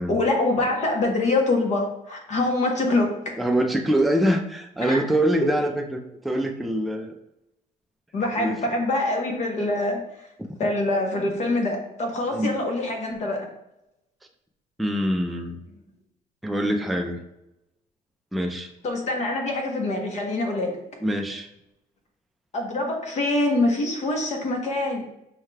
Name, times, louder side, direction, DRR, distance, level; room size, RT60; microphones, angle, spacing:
voice 1, 0.1-3.3 4.8-5.0 5.4-5.5 8.1-10.0 10.6-13.5 18.8-20.8 22.5-25.1, left 2 dB, 45° left, 2 dB, 1.0 m, -24 dB
voice 2, 3.4-7.1 8.4-8.6 12.3-12.5 14.8-15.6 16.4-17.2 18.3-18.7 21.0-21.5, right 1 dB, ahead, 3 dB, 0.3 m, -24 dB
5.5 x 2.3 x 3.2 m, 0.86 s
cardioid pair, 110°, 17 cm